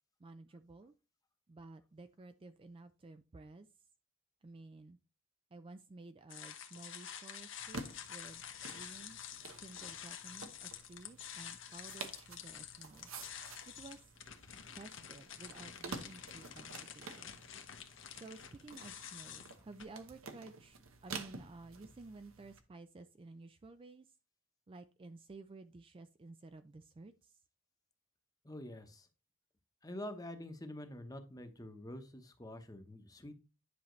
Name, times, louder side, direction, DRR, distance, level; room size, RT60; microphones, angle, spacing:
voice 1, 0.2-0.9 1.5-3.7 4.4-5.0 5.5-9.2 9.6-13.1 13.7-14.1 14.7-17.4 18.1-24.1 24.7-27.4, right 3 dB, 25° right, 10 dB, 0.3 m, -53 dB
sound 1, 6.3-19.8, left 9 dB, 65° left, 1.1 m, -49 dB
sound 2, 7.6-22.6, right 3 dB, 85° right, 1.1 m, -51 dB
voice 2, 28.4-29.1 29.8-33.4, left 1 dB, 20° left, 7 dB, 1.0 m, -47 dB
10.5 x 5.6 x 3.2 m, 0.31 s
head